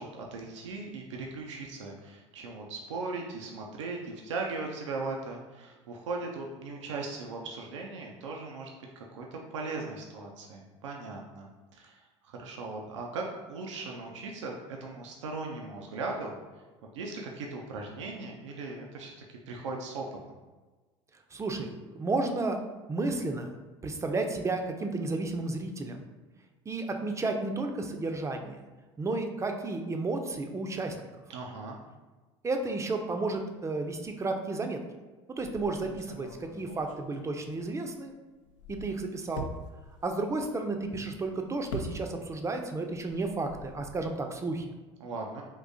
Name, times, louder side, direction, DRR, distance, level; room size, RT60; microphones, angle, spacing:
voice 1, 0.0-8.7 9.0-16.4 16.9-20.4 31.3-31.8 45.0-45.4, right 3 dB, 85° right, 0 dB, 0.4 m, -38 dB
voice 2, 21.3-22.6 22.9-23.5 23.8-26.1 26.7-28.6 29.0-31.0 32.4-34.8 35.4-38.1 38.7-39.5 40.0-44.7, right 3 dB, 20° right, 4 dB, 0.4 m, -32 dB
sound 1, 35.4-38.1 38.4-42.5 42.8-44.1, equal, 85° left, 0.4 m, -44 dB
3.6 x 2.6 x 2.6 m, 1.3 s
hypercardioid pair, 75°, 15 cm